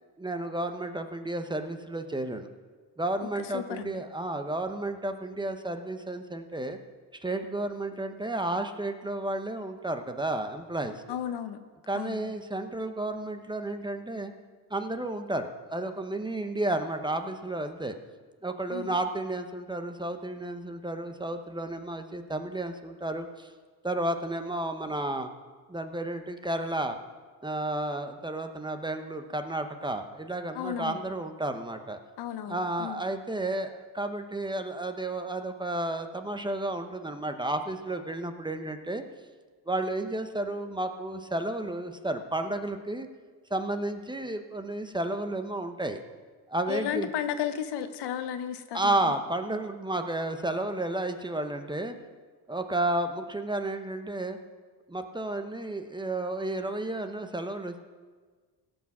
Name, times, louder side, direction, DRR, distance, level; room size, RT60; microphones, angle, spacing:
voice 1, 0.2-2.5 3.0-6.8 7.2-10.9 11.9-14.3 14.7-17.9 18.4-23.5 23.8-25.3 25.7-27.0 27.4-32.0 32.5-39.0 39.7-43.1 43.5-46.0 46.5-47.1 48.7-52.0 52.5-54.4 54.9-57.8, right 2 dB, 10° right, 7 dB, 0.8 m, -32 dB
voice 2, 3.2-4.0 11.1-11.6 11.9-12.3 18.7-19.0 30.5-31.0 32.2-33.0 46.7-49.1, left 9 dB, 85° left, 9 dB, 1.0 m, -34 dB
17.0 x 6.1 x 6.0 m, 1.4 s
cardioid pair, 110°, 39 cm